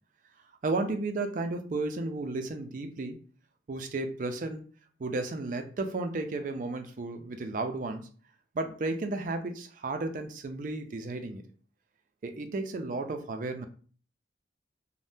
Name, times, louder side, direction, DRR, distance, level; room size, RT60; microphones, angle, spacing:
voice 1, 0.6-3.2 3.7-4.6 5.0-8.1 8.5-11.4 12.2-13.7, right 2 dB, 45° right, 7 dB, 0.4 m, -33 dB
3.4 x 2.1 x 2.6 m, 0.41 s
head